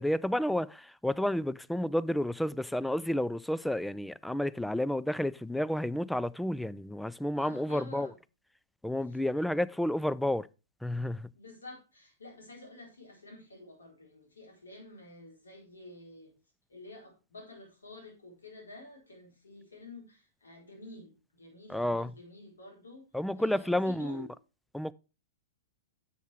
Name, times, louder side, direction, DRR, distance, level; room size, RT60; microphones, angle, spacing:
voice 1, 0.0-8.1 8.8-10.5 10.8-11.3 21.7-22.1 23.1-24.3 24.7-24.9, left 1 dB, 5° left, 0.3 m, -31 dB
voice 2, 7.4-8.1 9.1-9.2 11.3-16.3 16.7-23.0 23.3-24.3, left 2 dB, 85° left, 4.4 m, -50 dB
10.0 x 7.1 x 3.5 m
hypercardioid pair, 110°, 0 cm